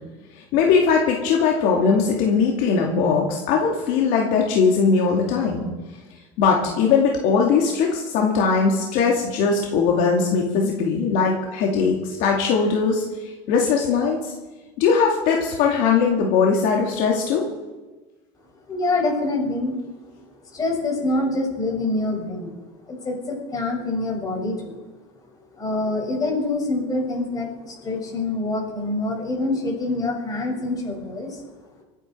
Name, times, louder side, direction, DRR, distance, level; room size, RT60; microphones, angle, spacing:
voice 1, 0.5-5.7 6.4-13.0 13.5-14.3 14.8-17.5, left 5 dB, 65° left, 0 dB, 2.5 m, -20 dB
voice 2, 18.7-19.7 20.5-22.5 22.9-24.7 25.6-31.4, left 2 dB, 25° left, -1 dB, 6.2 m, -25 dB
24.0 x 9.9 x 4.6 m, 1.2 s
supercardioid pair, 130°, 15 cm